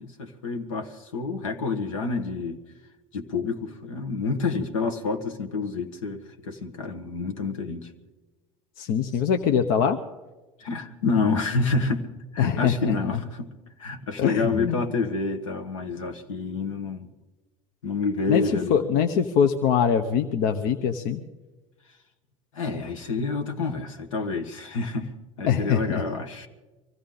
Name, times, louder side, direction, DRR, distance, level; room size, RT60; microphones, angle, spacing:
voice 1, 0.0-2.6 3.1-7.9 10.6-12.0 12.3-13.5 13.8-17.1 17.8-18.8 22.5-25.1 25.4-26.5, left 4 dB, 80° left, 5 dB, 1.6 m, -28 dB
voice 2, 8.8-10.0 12.4-13.2 14.2-14.8 18.3-21.2 25.5-26.0, left 7 dB, 60° left, 7 dB, 0.9 m, -23 dB
24.0 x 15.0 x 3.9 m, 1.2 s
hypercardioid pair, 70°, 16 cm